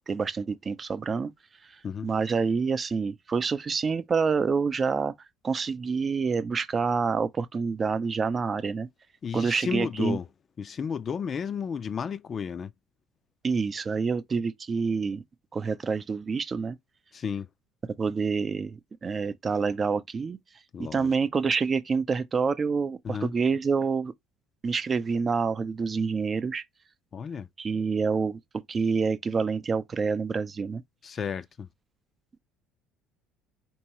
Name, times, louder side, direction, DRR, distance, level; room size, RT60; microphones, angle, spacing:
voice 1, 0.1-1.3 1.6-5.1 5.4-8.9 9.3-10.2 13.4-15.2 15.5-16.8 18.0-20.4 20.8-24.1 24.6-26.6 27.6-30.8, right 5 dB, 30° right, 0.6 m, -27 dB
voice 2, 9.2-10.2 10.6-12.7 17.1-17.5 20.7-21.1 23.0-23.3 27.1-27.5 31.0-31.7, left 6 dB, 35° left, 0.4 m, -33 dB
4.5 x 3.0 x 2.9 m
figure-of-eight pair, 55°, 0 cm